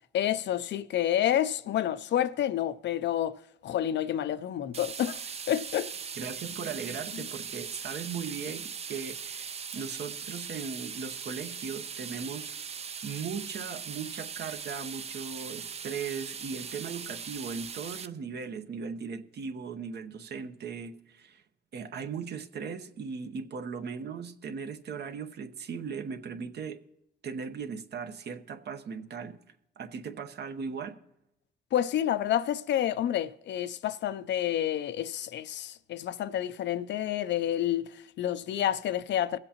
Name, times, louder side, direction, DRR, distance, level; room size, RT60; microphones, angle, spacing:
voice 1, 0.1-5.9 31.7-39.4, left 11 dB, 65° left, 0.5 m, -29 dB
sound 1, 4.7-18.1, right 6 dB, 30° right, 0.4 m, -40 dB
voice 2, 6.2-12.5 13.0-21.4 21.7-26.8 27.2-29.4 29.8-31.0, right 6 dB, 55° right, 0.9 m, -38 dB
23.0 x 7.9 x 2.9 m
cardioid pair, 90°, 20 cm